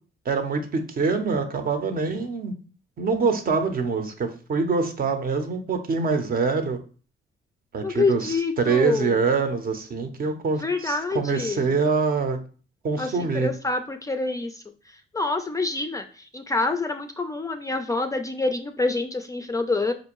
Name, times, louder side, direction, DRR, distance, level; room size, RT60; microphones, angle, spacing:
voice 1, 0.3-2.5 3.0-6.8 7.7-12.4 12.8-13.5, right 4 dB, 50° right, 6 dB, 0.7 m, -25 dB
voice 2, 7.8-9.2 10.6-11.7 13.0-14.5 15.1-16.0 16.3-19.9, left 3 dB, 15° left, 6 dB, 0.3 m, -26 dB
4.5 x 2.5 x 2.9 m, 0.39 s
cardioid pair, 90°, 20 cm